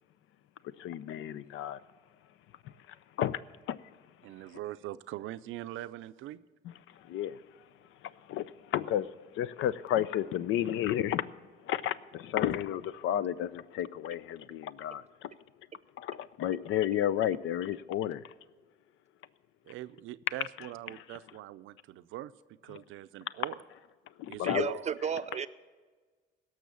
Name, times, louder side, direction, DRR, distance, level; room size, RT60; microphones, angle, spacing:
voice 1, 0.8-1.8 2.6-3.4 3.7-3.9 6.9-7.4 8.0-9.1 9.3-11.3 11.6-15.4 16.0-18.3 20.9-21.0 22.7-22.8 23.4-23.5 24.2-24.8, left 11 dB, 85° left, 0.5 m, -32 dB
voice 2, 4.2-6.4 19.7-22.3 22.6-23.5 24.3-25.0, right 14 dB, 85° right, 0.5 m, -42 dB
voice 3, 24.4-25.5, right 7 dB, 35° right, 0.5 m, -33 dB
17.0 x 6.2 x 6.9 m
cardioid pair, 90°, 20 cm